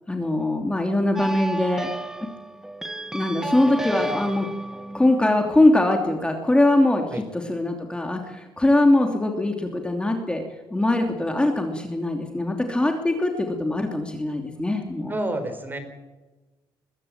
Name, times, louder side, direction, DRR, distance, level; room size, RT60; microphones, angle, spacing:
voice 1, 0.1-1.9 3.1-4.5 4.9-10.4 10.7-15.1, left 1 dB, 10° left, 3 dB, 2.9 m, -22 dB
sound 1, 1.2-6.2, right 1 dB, 5° right, 1.2 m, -33 dB
voice 2, 15.1-15.8, right 1 dB, 20° right, 9 dB, 4.3 m, -29 dB
22.0 x 15.0 x 8.8 m, 1.2 s
cardioid pair, 110°, 9 cm